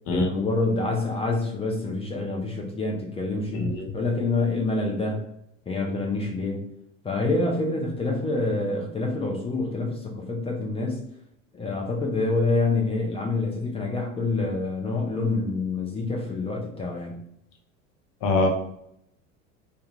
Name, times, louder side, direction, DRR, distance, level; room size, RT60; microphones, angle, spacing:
voice 1, 0.1-5.2 5.7-6.7 7.0-11.0 11.5-17.2, left 3 dB, 15° left, 0 dB, 0.4 m, -27 dB
voice 2, 3.5-3.9 18.2-18.5, left 2 dB, 50° left, 2 dB, 0.7 m, -23 dB
2.3 x 2.3 x 3.0 m, 0.74 s
hypercardioid pair, 75°, 40 cm